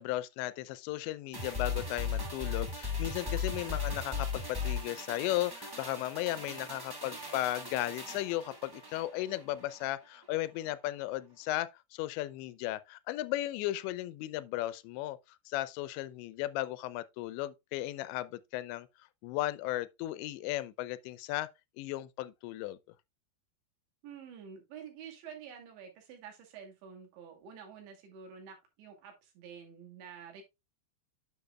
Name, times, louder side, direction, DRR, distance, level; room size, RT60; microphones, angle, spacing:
voice 1, 0.0-15.2 15.5-18.9 19.2-21.5 21.8-22.8, left 15 dB, 90° left, 2.9 m, -35 dB
sound 1, 1.3-9.9 10.2-10.3, left 5 dB, 20° right, 0.5 m, -37 dB
voice 2, 24.0-30.4, right 7 dB, 85° right, 4.8 m, -49 dB
9.7 x 6.9 x 2.3 m
omnidirectional pair, 5.1 m